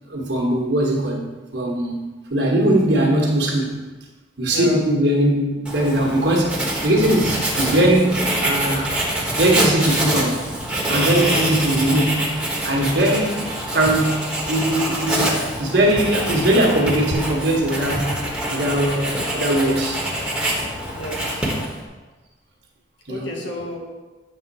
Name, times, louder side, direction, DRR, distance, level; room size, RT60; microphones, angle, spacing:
voice 1, 0.1-3.8 4.4-8.9 9.4-10.4 10.9-13.4 13.7-18.1 18.5-20.0 23.1-23.3, right 1 dB, 65° right, -1 dB, 1.3 m, -20 dB
Writing, 5.6-21.9, right 1 dB, 5° right, 1.2 m, -25 dB
voice 2, 12.7-13.2 20.9-21.5 23.1-23.8, equal, 85° left, -1 dB, 1.2 m, -31 dB
sound 1, 17.1-21.5, left 2 dB, 65° left, 0.7 m, -39 dB
7.8 x 3.9 x 5.4 m, 1.2 s
head